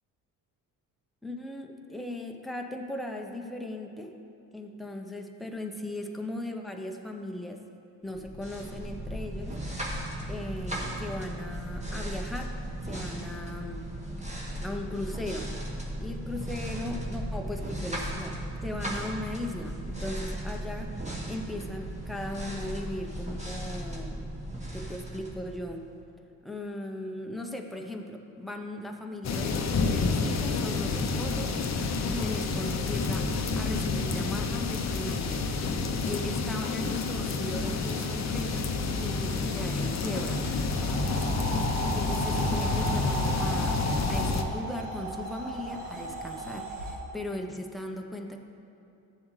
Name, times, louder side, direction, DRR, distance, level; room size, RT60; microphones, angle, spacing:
voice 1, 1.2-4.1 4.5-7.6 8.0-9.6 10.2-12.5 12.8-13.8 14.6-15.6 16.0-20.9 21.3-24.3 24.7-25.9 26.4-31.7 32.0-33.3 33.5-35.4 36.0-40.4 41.6-41.7 41.9-43.8 44.1-48.4, left 1 dB, ahead, 2 dB, 0.8 m, -38 dB
sound 1, 8.1-25.9, right 1 dB, 15° right, 1.8 m, -36 dB
sound 2, 29.2-44.4, left 4 dB, 40° left, 0.8 m, -29 dB
sound 3, 37.4-47.0, right 2 dB, 80° right, 1.5 m, -36 dB
11.5 x 7.1 x 3.2 m, 2.7 s
hypercardioid pair, 55°, 43 cm